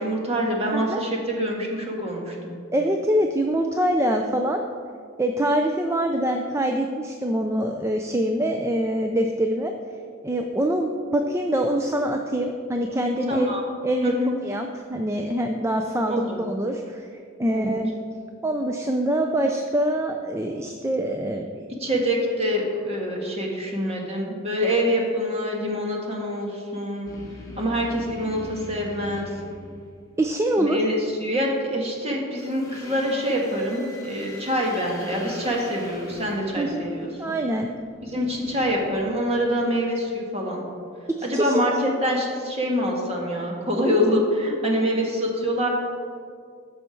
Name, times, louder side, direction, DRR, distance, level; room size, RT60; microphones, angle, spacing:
voice 1, 0.0-2.5 13.3-13.6 14.0-14.3 16.1-16.4 17.5-17.7 21.8-27.1 27.6-29.3 30.6-37.3 38.1-40.6 41.2-45.7, equal, 30° right, -1 dB, 1.6 m, -25 dB
voice 2, 0.7-1.0 2.7-4.6 5.2-9.7 10.2-13.5 13.8-17.1 17.4-18.0 18.4-21.7 30.2-30.8 36.6-36.8 37.2-37.7 41.1-41.6, right 1 dB, 15° right, 4 dB, 0.4 m, -24 dB
sound 1, 27.0-30.3 32.4-39.7, left 1 dB, 15° left, 1.5 m, -42 dB
13.5 x 5.6 x 4.5 m, 2.2 s
head